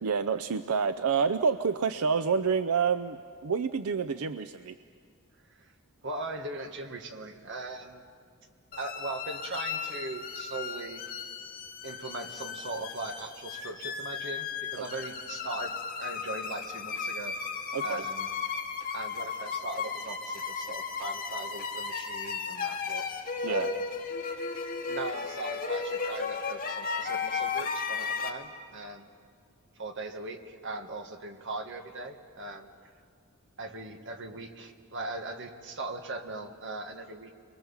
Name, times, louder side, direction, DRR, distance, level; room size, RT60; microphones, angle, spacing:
voice 1, 0.0-4.8 17.7-18.1 23.4-23.7, right 5 dB, 85° right, 11 dB, 0.6 m, -28 dB
voice 2, 6.0-8.0 8.8-11.0 11.8-17.4 17.8-18.3 18.9-23.1 23.5-23.8 24.9-29.1 29.8-32.7 33.6-37.3, right 2 dB, 60° right, 5 dB, 1.8 m, -39 dB
sound 1, 8.7-28.3, left 5 dB, 45° left, 2.1 m, -35 dB
29.0 x 23.0 x 7.3 m, 2.2 s
head